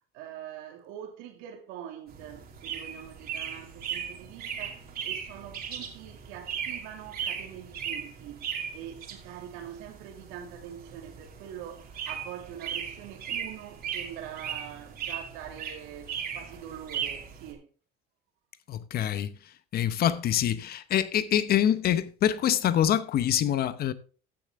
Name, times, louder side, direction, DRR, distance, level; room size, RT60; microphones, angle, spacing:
voice 1, 0.1-17.7, right 10 dB, 80° right, 2.5 m, -44 dB
sound 1, 2.1-17.5, right 8 dB, 50° right, 2.6 m, -38 dB
voice 2, 18.7-23.9, left 10 dB, 50° left, 0.9 m, -26 dB
14.5 x 6.8 x 3.6 m
supercardioid pair, 100°, 20 cm